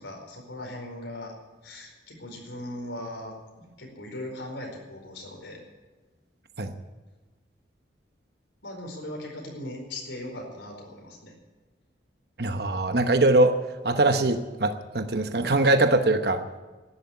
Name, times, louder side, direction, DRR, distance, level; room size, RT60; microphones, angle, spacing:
voice 1, 0.0-1.3 1.6-3.3 3.8-5.6 8.6-11.3, left 1 dB, 90° left, 1 dB, 4.8 m, -39 dB
voice 2, 12.4-13.6 13.8-16.4, right 2 dB, 60° right, 8 dB, 1.0 m, -22 dB
12.5 x 11.0 x 9.6 m, 1.2 s
head